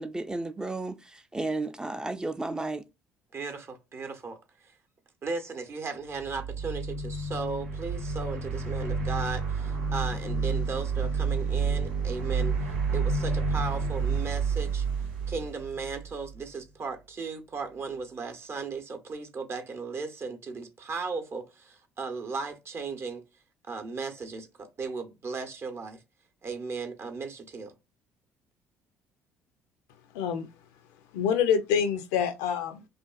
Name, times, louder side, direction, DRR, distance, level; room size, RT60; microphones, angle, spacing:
voice 1, 0.0-2.8, right 2 dB, 10° right, 0.4 m, -33 dB
voice 2, 3.3-4.4 4.6-4.7 5.2-12.6 12.9-14.9 15.3-23.2 23.7-26.0 26.4-27.7, right 4 dB, 40° right, 0.7 m, -36 dB
sound 1, 6.1-16.4, right 4 dB, 80° right, 0.8 m, -30 dB
voice 3, 30.1-30.5 31.1-32.9, left 7 dB, 75° left, 0.4 m, -26 dB
2.5 x 2.4 x 2.2 m
hypercardioid pair, 55°, 6 cm